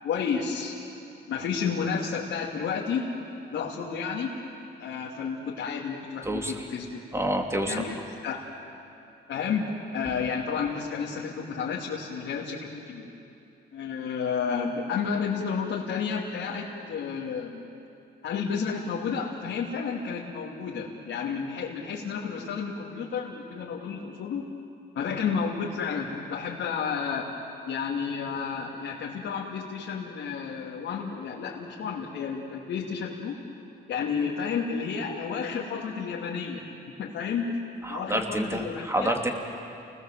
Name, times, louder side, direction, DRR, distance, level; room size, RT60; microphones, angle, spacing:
voice 1, 0.0-0.8 1.3-3.0 3.5-4.3 4.8-7.0 7.6-8.0 8.2-8.4 9.3-13.1 13.7-17.6 18.2-24.5 24.9-27.3 27.7-33.4 33.9-36.6 37.0-37.6 37.9-39.2, left 6 dB, 70° left, -4 dB, 2.9 m, -31 dB
voice 2, 6.2-6.7 7.1-7.8 37.8-39.3, right 1 dB, 15° right, 3 dB, 3.0 m, -28 dB
29.5 x 20.0 x 7.7 m, 2.6 s
cardioid pair, 90°, 20 cm